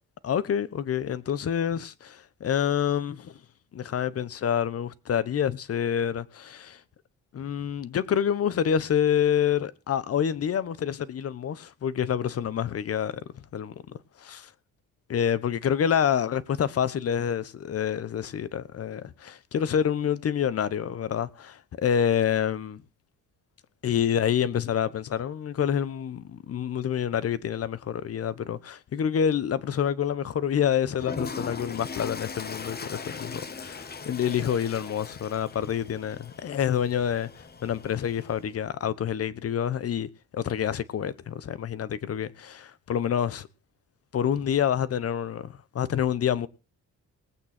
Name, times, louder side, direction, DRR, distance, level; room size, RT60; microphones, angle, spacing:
voice 1, 0.2-3.3 3.7-6.8 7.3-13.1 13.5-14.5 15.1-22.8 23.8-37.3 37.6-43.5 44.1-46.5, left 8 dB, 50° left, 1.0 m, -27 dB
Toilet flush, 31.0-38.5, left 5 dB, 35° left, 1.2 m, -39 dB
19.5 x 8.5 x 4.4 m
cardioid pair, 90°, 30 cm